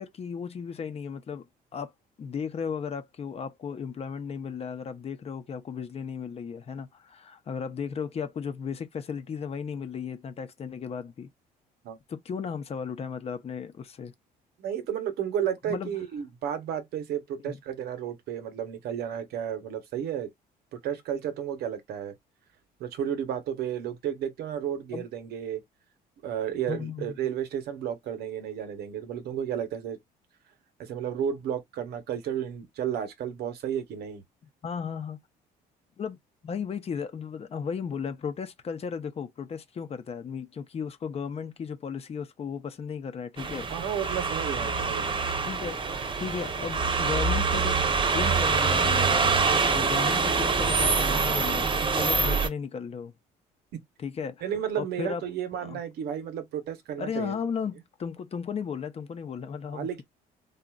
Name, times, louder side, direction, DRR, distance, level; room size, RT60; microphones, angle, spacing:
voice 1, 0.0-1.4 1.7-1.9 2.2-11.3 12.1-14.1 15.7-16.0 17.4-17.6 24.9-25.0 26.7-27.1 34.6-35.2 36.0-36.2 36.4-43.7 44.7-44.8 45.4-49.4 49.7-53.1 54.0-54.4 54.8-55.2 55.6-55.8 57.0-60.0, left 6 dB, 35° left, 0.7 m, -35 dB
voice 2, 14.6-20.3 20.7-22.1 22.8-25.6 26.2-30.0 30.8-34.2 43.7-45.2 50.3-50.4 53.7-53.8 54.4-57.4 59.7-60.0, right 9 dB, 75° right, 1.0 m, -32 dB
sound 1, 43.4-52.5, right 4 dB, 30° right, 0.8 m, -25 dB
3.9 x 2.4 x 2.3 m
cardioid pair, 110°, 17 cm